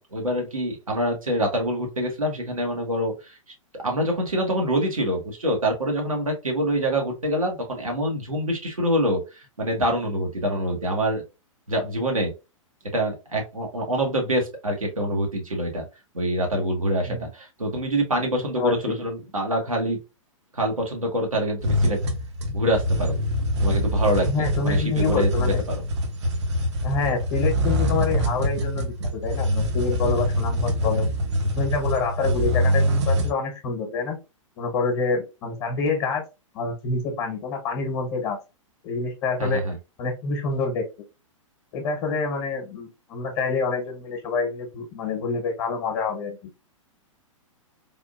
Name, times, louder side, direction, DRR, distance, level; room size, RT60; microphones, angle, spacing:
voice 1, 0.0-3.4 3.8-11.2 11.7-12.3 12.9-15.9 16.1-20.0 20.5-22.0 22.5-23.2 23.6-24.3 24.6-25.8 31.0-31.1 39.4-39.8, equal, 90° right, 1 dB, 1.1 m, -25 dB
voice 2, 18.5-18.9 24.3-25.6 26.8-31.1 31.5-34.2 34.6-36.2 36.5-38.4 38.8-39.6 40.0-40.8 41.7-46.5, left 4 dB, 35° left, 2 dB, 1.0 m, -27 dB
sound 1, 21.6-33.3, equal, 55° right, 0.7 m, -24 dB
3.4 x 2.5 x 2.3 m, 0.27 s
figure-of-eight pair, 110°, 17 cm